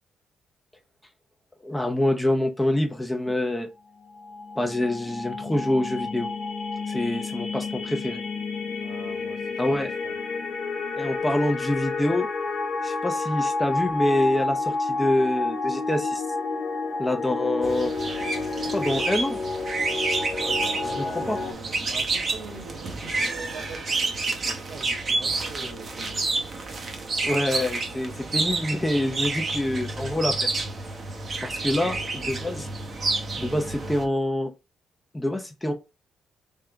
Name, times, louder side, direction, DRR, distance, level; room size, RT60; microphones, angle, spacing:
voice 1, 1.6-3.7 4.6-6.3 6.9-8.2 9.6-9.9 11.0-12.3 12.8-16.2 17.0-17.9 18.6-19.4 21.0-21.4 27.2-30.5 31.4-32.0 32.2-32.7 33.4-34.5 35.1-35.7, left 1 dB, 10° left, 0.6 m, -26 dB
sound 1, 4.0-21.5, left 3 dB, 60° left, 1.0 m, -30 dB
voice 2, 8.7-10.1 20.3-26.3 31.8-32.1, right 3 dB, 60° right, 1.7 m, -43 dB
sound 2, 17.6-34.0, right 3 dB, 40° right, 0.8 m, -29 dB
3.6 x 2.8 x 3.4 m
cardioid pair, 90°, 0 cm